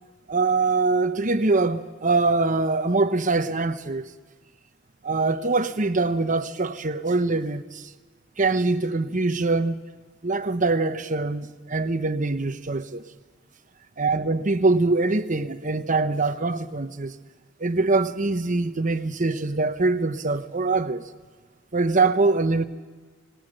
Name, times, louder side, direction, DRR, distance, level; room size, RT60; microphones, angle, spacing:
voice 1, 0.3-4.1 5.0-7.9 8.4-9.8 10.2-13.1 14.0-17.1 17.6-21.1 21.7-22.7, right 3 dB, 40° right, 1.0 m, -23 dB
27.0 x 19.5 x 6.5 m
head